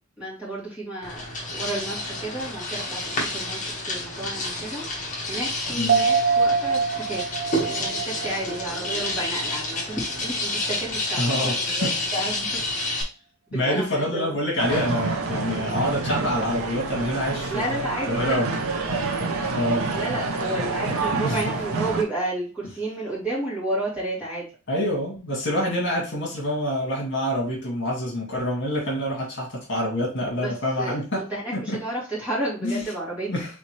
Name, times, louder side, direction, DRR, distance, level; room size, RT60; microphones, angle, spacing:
voice 1, 0.2-1.2 1.5-4.9 5.3-7.4 7.8-12.6 13.5-14.3 17.5-18.6 19.9-24.5 30.3-30.5 30.8-33.3, right 1 dB, 5° right, -9 dB, 2.7 m, -31 dB
sound 1, 1.0-13.0, left 1 dB, 35° left, 1.4 m, -29 dB
sound 2, 5.9-9.6 9.9-10.0, right 5 dB, 40° right, 0.5 m, -25 dB
voice 2, 11.2-11.9 13.5-17.7 18.1-18.5 19.5-19.8 21.2-21.4 24.7-31.2 31.7-31.8 32.6-32.8 33.3-33.5, equal, 55° left, -3 dB, 2.0 m, -26 dB
sound 3, 14.6-22.0, right 3 dB, 75° right, 0.8 m, -28 dB
4.2 x 3.8 x 3.1 m, 0.34 s
head